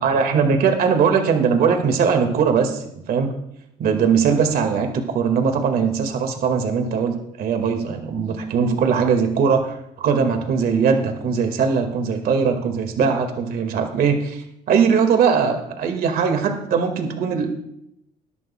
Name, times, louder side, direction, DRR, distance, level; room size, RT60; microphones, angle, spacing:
voice 1, 0.0-3.3 3.8-17.5, right 6 dB, 65° right, 5 dB, 1.9 m, -20 dB
20.5 x 11.0 x 2.3 m, 0.78 s
cardioid pair, 110°, 17 cm